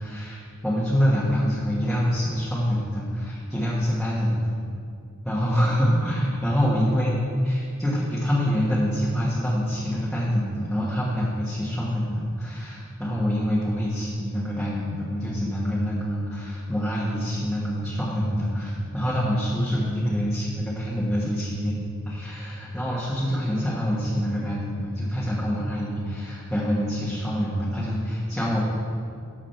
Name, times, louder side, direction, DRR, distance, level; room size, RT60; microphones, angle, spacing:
voice 1, 0.0-4.5 5.2-7.1 7.4-21.7 22.0-28.6, equal, ahead, -8 dB, 1.4 m, -26 dB
12.0 x 7.3 x 4.5 m, 2.3 s
head